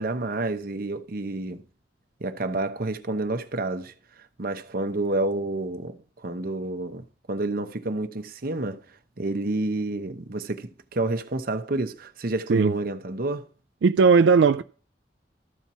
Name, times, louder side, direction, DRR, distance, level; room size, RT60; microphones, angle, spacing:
voice 1, 0.0-1.6 2.2-13.5, right 2 dB, 55° right, 0.9 m, -29 dB
voice 2, 13.8-14.6, right 5 dB, 70° right, 0.3 m, -17 dB
13.5 x 4.5 x 5.5 m
head